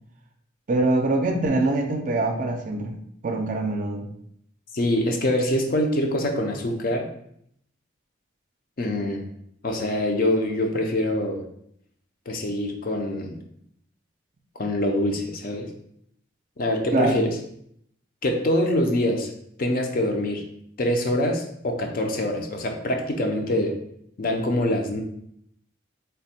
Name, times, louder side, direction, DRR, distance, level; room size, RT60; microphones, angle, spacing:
voice 1, 0.7-2.9 3.2-4.1 16.9-17.2, right 2 dB, 40° right, 4 dB, 0.4 m, -23 dB
voice 2, 4.7-7.1 8.8-9.2 9.6-11.5 12.3-13.4 14.6-15.7 16.6-17.3 18.2-19.3 19.6-20.4 20.8-23.8 24.2-25.0, left 1 dB, 45° left, 3 dB, 0.5 m, -24 dB
3.4 x 2.1 x 4.2 m, 0.71 s
head